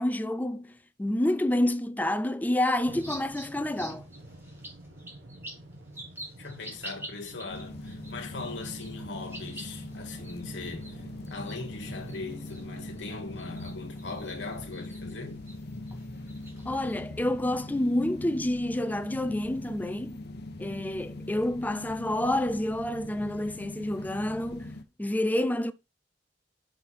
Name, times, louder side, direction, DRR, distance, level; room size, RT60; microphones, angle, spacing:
voice 1, 0.0-4.1 16.7-20.2 20.6-25.7, left 1 dB, 10° left, 0.4 m, -28 dB
sound 1, 2.7-17.0, right 1 dB, 15° right, 2.6 m, -48 dB
sound 2, 2.8-13.5, right 1 dB, 80° right, 1.5 m, -48 dB
voice 2, 6.4-15.4, left 3 dB, 80° left, 1.3 m, -40 dB
sound 3, 7.5-24.8, left 2 dB, 60° left, 0.7 m, -41 dB
5.6 x 5.6 x 4.1 m
head